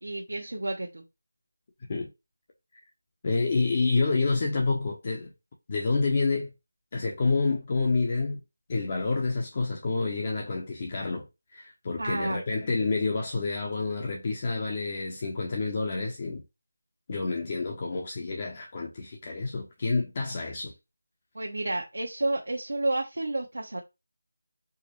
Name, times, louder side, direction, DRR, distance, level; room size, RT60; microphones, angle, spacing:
voice 1, 0.0-1.0 12.0-12.4 21.3-23.8, right 2 dB, 85° right, 0.9 m, -30 dB
voice 2, 3.2-5.3 5.7-6.5 6.9-8.4 8.7-11.3 11.5-16.4 17.1-20.7, left 3 dB, 30° left, 0.6 m, -28 dB
4.7 x 2.1 x 3.0 m
figure-of-eight pair, 175°, 0 cm